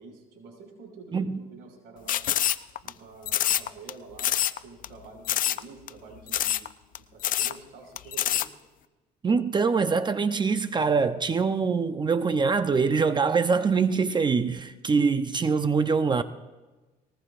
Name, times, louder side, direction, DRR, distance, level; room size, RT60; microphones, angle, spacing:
voice 1, 0.0-2.2 2.8-4.4 4.6-6.7 7.0-8.4, right 4 dB, 80° right, 5.9 m, -47 dB
sound 1, 2.1-2.9 3.3-3.9 4.2-4.6 4.8-4.9 5.3-5.6 5.9-6.0 6.3-6.7 6.9-7.0 7.2-7.6 8.0-8.5, left 12 dB, 55° left, 0.5 m, -25 dB
voice 2, 9.2-16.2, right 5 dB, 25° right, 0.6 m, -24 dB
20.0 x 19.0 x 2.5 m
cardioid pair, 110°, 17 cm